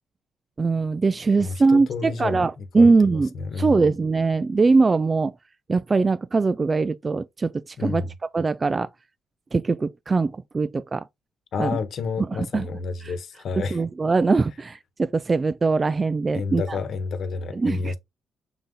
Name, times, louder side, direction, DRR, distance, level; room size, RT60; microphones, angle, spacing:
voice 1, 0.6-3.3 3.6-5.3 5.7-8.0 8.3-8.9 9.5-11.0 11.6-11.8 12.2-12.7 13.0-13.1 13.7-16.8 17.5-17.9, right 4 dB, 30° right, 0.3 m, -21 dB
voice 2, 1.4-2.9 3.3-3.8 7.8-8.1 11.5-13.8 16.3-18.0, left 4 dB, 60° left, 1.2 m, -30 dB
6.6 x 4.0 x 3.7 m
cardioid pair, 90°, 0 cm